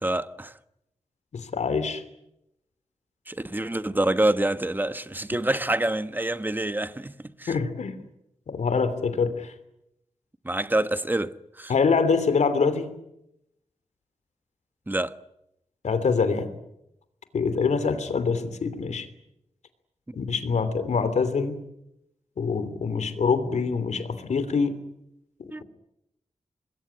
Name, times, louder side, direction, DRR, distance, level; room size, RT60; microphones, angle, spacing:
voice 1, 0.0-0.5 3.3-7.6 10.4-11.7 14.9-15.2 20.1-20.2 25.5-25.6, right 1 dB, 15° right, 1.2 m, -27 dB
voice 2, 1.3-2.0 7.5-8.0 8.5-9.5 11.7-12.9 15.8-16.5 17.3-19.1 20.2-21.6 22.4-24.8, left 5 dB, 90° left, 3.0 m, -25 dB
26.5 x 21.5 x 9.8 m
wide cardioid pair, 105°, 12 cm